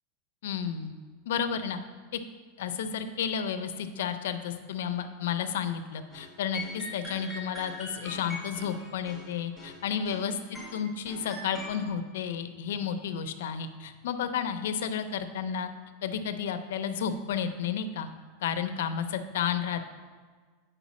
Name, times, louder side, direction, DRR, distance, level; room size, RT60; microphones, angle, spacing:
voice 1, 0.4-0.9 1.3-1.8 2.1-2.2 2.6-10.3 10.7-15.7 16.0-18.1 18.4-19.9, left 7 dB, 80° left, 9 dB, 0.6 m, -32 dB
sound 1, 6.1-6.3 6.5-10.3 10.5-11.7, left 1 dB, 5° right, 1.9 m, -42 dB
8.2 x 5.5 x 4.2 m, 1.5 s
supercardioid pair, 175°, 0 cm